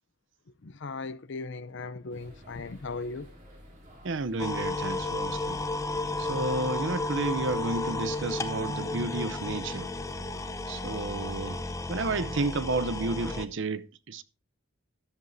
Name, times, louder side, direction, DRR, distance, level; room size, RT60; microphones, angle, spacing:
voice 1, 0.6-3.3, left 3 dB, 60° left, 0.6 m, -38 dB
sound 1, 2.1-11.8, equal, 35° right, 3.1 m, -52 dB
voice 2, 4.0-5.6 6.2-9.9 10.7-11.6 11.9-14.2, right 3 dB, 60° right, 0.7 m, -31 dB
sound 2, 4.4-13.5, left 2 dB, 15° left, 0.7 m, -33 dB
13.0 x 10.5 x 2.7 m
head